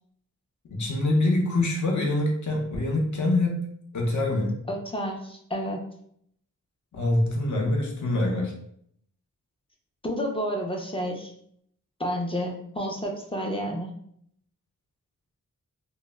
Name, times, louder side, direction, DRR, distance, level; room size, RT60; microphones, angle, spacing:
voice 1, 0.7-3.7 3.9-4.6 6.9-8.5, left 2 dB, 55° left, 0 dB, 0.6 m, -25 dB
voice 2, 4.7-5.8 10.0-11.3 12.0-13.9, equal, 15° left, 1 dB, 0.4 m, -30 dB
2.1 x 2.0 x 3.2 m, 0.68 s
wide cardioid pair, 105°, 34 cm